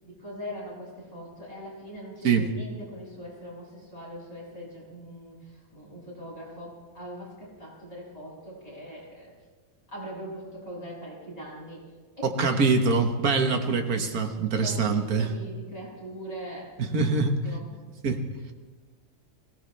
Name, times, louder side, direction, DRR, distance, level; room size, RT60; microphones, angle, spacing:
voice 1, 0.0-9.3 9.9-11.9 12.2-13.6 14.6-17.1 17.4-17.7, equal, 25° left, -6 dB, 7.0 m, -41 dB
voice 2, 12.2-15.3 16.9-17.3 18.0-18.2, right 4 dB, 85° right, 6 dB, 1.8 m, -24 dB
22.5 x 17.5 x 3.3 m, 1.4 s
omnidirectional pair, 1.5 m